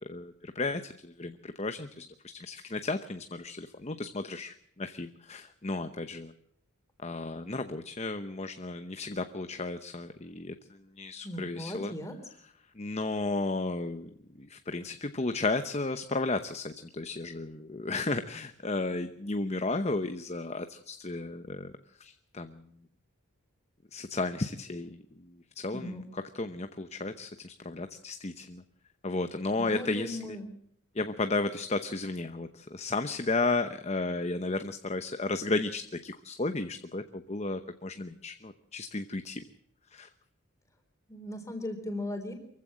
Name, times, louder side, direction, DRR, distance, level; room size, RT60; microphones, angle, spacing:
voice 1, 0.0-2.1 2.4-6.3 7.0-11.9 12.8-21.7 22.0-22.6 23.9-26.0 26.3-28.6 29.0-30.4 30.9-39.4 39.9-40.1, left 3 dB, 30° left, 9 dB, 0.8 m, -34 dB
voice 2, 11.2-12.2 25.7-26.0 29.6-30.5 41.1-42.3, left 1 dB, 15° left, 5 dB, 3.7 m, -37 dB
24.0 x 15.5 x 7.6 m, 0.72 s
head